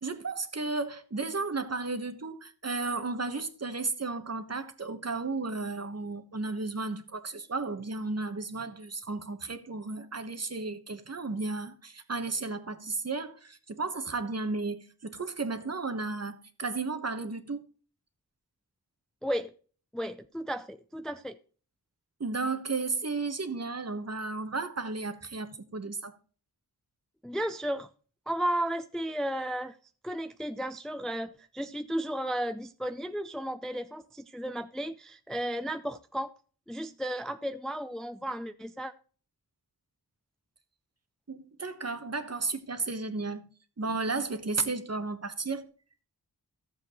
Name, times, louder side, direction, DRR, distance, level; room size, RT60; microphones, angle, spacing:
voice 1, 0.0-17.7 22.2-26.2 41.3-43.4 43.8-45.7, right 3 dB, 40° right, 1.2 m, -34 dB
voice 2, 19.2-19.5 19.9-21.4 27.2-27.9 28.3-29.8 30.0-36.3 36.7-38.9, equal, ahead, 0.4 m, -34 dB
14.0 x 7.6 x 3.1 m
wide cardioid pair, 100°, 39 cm